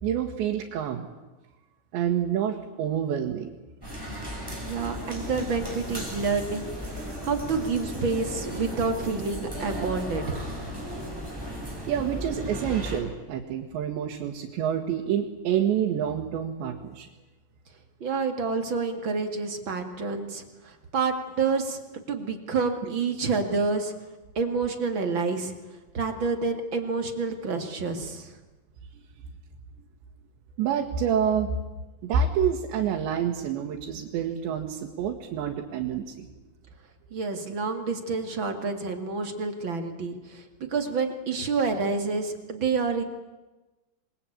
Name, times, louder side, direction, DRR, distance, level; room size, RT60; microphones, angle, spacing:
voice 1, 0.0-1.1 1.9-3.5 11.9-17.1 28.9-29.0 29.8-29.9 30.6-31.6 32.0-36.3, right 8 dB, 85° right, 0 dB, 4.0 m, -28 dB
sound 1, 3.8-13.0, equal, 5° right, 4.6 m, -35 dB
voice 2, 4.7-10.4 18.0-21.8 22.1-23.9 24.4-25.5 25.9-28.4 37.1-40.4 40.7-43.0, right 4 dB, 40° right, 5 dB, 2.0 m, -28 dB
27.5 x 22.5 x 8.8 m, 1.1 s
omnidirectional pair, 5.0 m